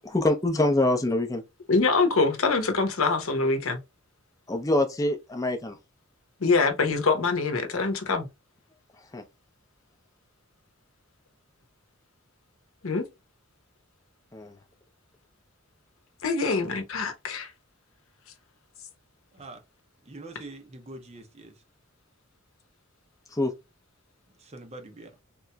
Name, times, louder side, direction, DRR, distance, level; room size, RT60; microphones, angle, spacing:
voice 1, 0.0-1.4 4.5-5.8 9.1-9.2 14.3-14.6 23.3-23.5, left 1 dB, 15° left, 0.5 m, -25 dB
voice 2, 1.7-3.8 6.4-8.3 12.8-13.0 16.2-17.5, left 4 dB, 75° left, 0.8 m, -24 dB
voice 3, 20.0-21.6 24.4-25.1, right 2 dB, 30° right, 0.6 m, -44 dB
3.8 x 2.9 x 2.2 m
head